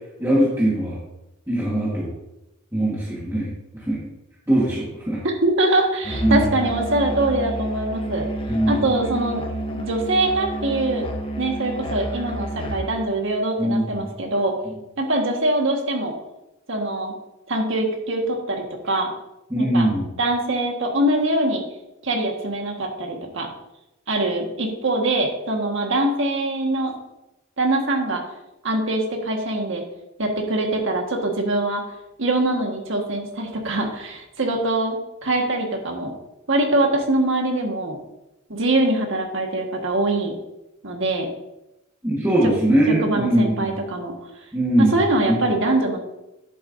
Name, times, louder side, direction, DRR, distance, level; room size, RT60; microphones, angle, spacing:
voice 1, 0.2-1.0 1.5-2.1 2.7-3.5 3.9-4.0 4.5-5.2 6.2-6.5 8.5-8.8 13.6-14.1 19.5-20.1 42.0-43.7 44.5-45.0 45.3-45.4, right 1 dB, 10° right, -7 dB, 1.5 m, -21 dB
voice 2, 5.2-8.3 8.7-9.4 9.7-11.0 11.4-14.6 15.0-16.1 16.7-17.1 17.5-19.1 19.5-19.9 20.2-21.6 22.0-23.5 24.1-26.9 27.6-28.2 28.6-29.8 30.2-31.8 32.2-36.1 36.5-38.0 38.5-40.3 40.8-41.3 42.9-44.1 44.8-46.0, right 2 dB, 65° right, 2 dB, 1.6 m, -23 dB
Musical instrument, 6.0-13.0, right 1 dB, 25° left, 0.9 m, -29 dB
10.5 x 8.0 x 2.7 m, 0.93 s
head